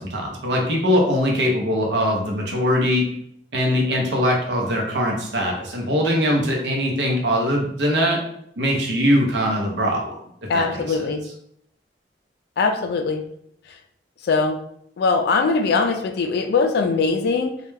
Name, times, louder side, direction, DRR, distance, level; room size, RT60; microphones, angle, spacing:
voice 1, 0.0-3.1 3.5-8.2 8.6-10.0 10.4-11.0, equal, 70° right, 0 dB, 0.7 m, -21 dB
voice 2, 10.5-11.3 12.6-13.2 14.2-14.6 15.0-17.6, left 4 dB, 65° left, 6 dB, 0.3 m, -21 dB
2.3 x 2.2 x 3.1 m, 0.71 s
head